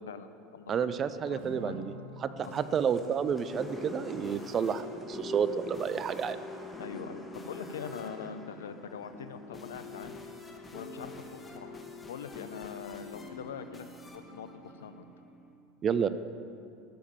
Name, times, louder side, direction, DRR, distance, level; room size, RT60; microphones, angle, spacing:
voice 1, 0.0-0.9 1.3-1.8 2.4-2.5 6.8-10.1 10.7-13.9 14.1-15.1, left 7 dB, 80° left, 10 dB, 0.7 m, -43 dB
voice 2, 0.7-1.9 2.2-6.4 15.8-16.1, right 7 dB, 35° right, 13 dB, 0.6 m, -30 dB
Acoustic guitar / Strum, 1.4-5.8, left 1 dB, 70° right, 3.2 m, -49 dB
sound 1, 2.4-10.7, left 1 dB, 5° left, 1.8 m, -47 dB
sound 2, 3.1-15.5, left 3 dB, 20° left, 1.6 m, -46 dB
13.0 x 7.2 x 7.2 m, 2.7 s
hypercardioid pair, 80°, 0 cm